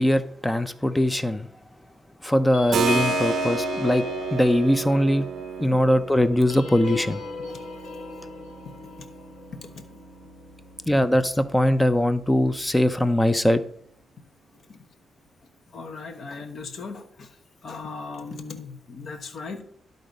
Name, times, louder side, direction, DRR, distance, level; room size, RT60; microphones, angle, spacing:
voice 1, 0.0-1.5 2.2-5.3 5.6-7.2 10.9-13.6, left 1 dB, 10° left, 13 dB, 0.4 m, -21 dB
sound 1, 2.5-11.5 11.9-12.1 12.4-12.7, left 3 dB, 85° left, 2.3 m, -35 dB
Keyboard (musical), 2.7-11.3, right 8 dB, 70° right, 0.4 m, -33 dB
voice 2, 15.7-17.3 17.6-19.6, left 4 dB, 60° left, 6 dB, 1.1 m, -38 dB
12.0 x 4.0 x 5.2 m, 0.68 s
cardioid pair, 110°, 0 cm